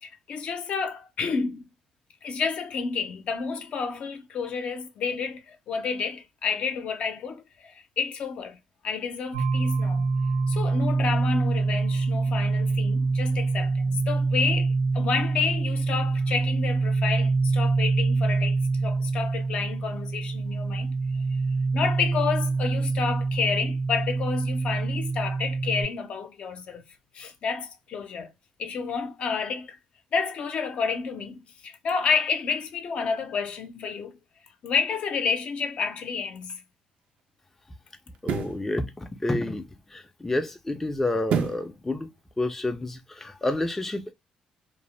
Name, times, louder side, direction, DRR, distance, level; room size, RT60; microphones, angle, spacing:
voice 1, 0.0-1.7 2.2-8.6 8.8-10.1 10.5-20.9 21.7-26.8 27.1-28.3 28.6-29.8 30.1-34.2 34.6-36.6, left 5 dB, 60° left, 0.5 m, -30 dB
sound 1, 9.3-25.8, right 3 dB, 90° right, 1.3 m, -25 dB
Book cover hit, 36.3-36.5 38.2-38.6 41.3-41.7 42.2-42.3, right 7 dB, 70° right, 0.4 m, -28 dB
voice 2, 38.2-42.1 42.4-44.1, left 2 dB, 10° left, 0.4 m, -29 dB
2.6 x 2.0 x 3.0 m
cardioid pair, 95°, 2 cm